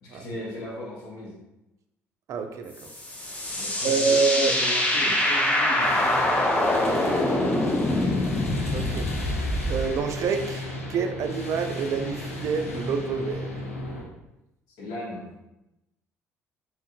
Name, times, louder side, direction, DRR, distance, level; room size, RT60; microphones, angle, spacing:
voice 1, 0.0-1.3 3.5-6.4 6.8-7.5 7.9-8.4 14.8-15.3, left 1 dB, 60° left, -5 dB, 1.1 m, -38 dB
voice 2, 2.3-2.9 3.8-4.6 8.7-9.1 9.7-13.5, right 5 dB, 45° right, 6 dB, 0.4 m, -27 dB
sound 1, 2.8-10.0, left 1 dB, 20° left, 0.6 m, -24 dB
sound 2, 5.8-14.0, left 1 dB, 85° left, 0.4 m, -35 dB
3.7 x 3.0 x 2.5 m, 0.93 s
figure-of-eight pair, 50°, 7 cm